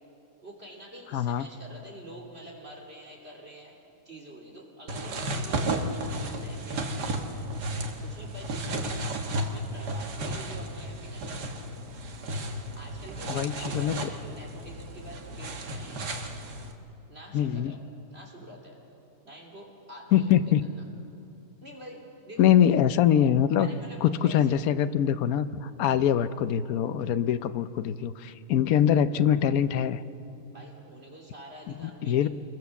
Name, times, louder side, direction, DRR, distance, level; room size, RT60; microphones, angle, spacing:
voice 1, 0.4-3.7 4.0-9.0 9.4-11.8 12.7-16.0 17.1-17.8 18.1-18.8 19.2-20.3 20.6-20.7 21.6-22.5 23.6-24.5 25.9-26.0 30.5-32.3, right 1 dB, 40° right, 0 dB, 3.3 m, -47 dB
voice 2, 1.1-1.5 13.3-14.1 17.3-17.8 20.1-20.6 22.4-23.7 24.0-30.0 31.8-32.3, left 10 dB, 65° left, 12 dB, 1.1 m, -23 dB
sound 1, 4.9-16.7, right 1 dB, 85° right, 2.1 m, -33 dB
27.0 x 22.0 x 7.1 m, 2.8 s
omnidirectional pair, 1.7 m